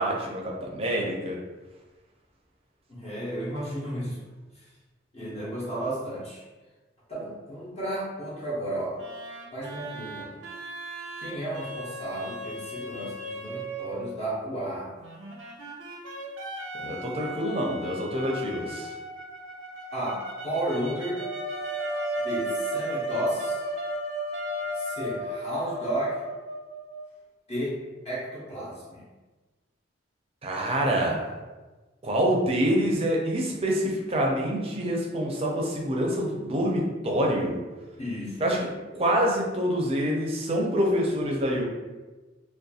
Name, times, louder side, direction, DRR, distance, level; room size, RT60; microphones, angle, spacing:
voice 1, 0.0-1.4 16.8-18.9 30.4-31.4 32.0-37.6 38.4-38.6 38.9-41.6, equal, 30° right, -1 dB, 0.5 m, -26 dB
voice 2, 2.9-4.2 4.6-4.7 5.1-6.4 7.1-9.0 9.5-10.4 11.2-14.9 19.9-21.2 22.2-23.6 24.7-26.2 27.5-27.8 28.0-29.0 38.0-38.6, right 1 dB, 35° left, -8 dB, 0.6 m, -33 dB
sound 1, 9.0-14.1 15.0-24.0 24.3-25.4, equal, 85° right, 0.5 m, -39 dB
sound 2, 21.2-27.1, right 1 dB, 85° left, 0.6 m, -32 dB
2.4 x 2.1 x 2.7 m, 1.2 s
head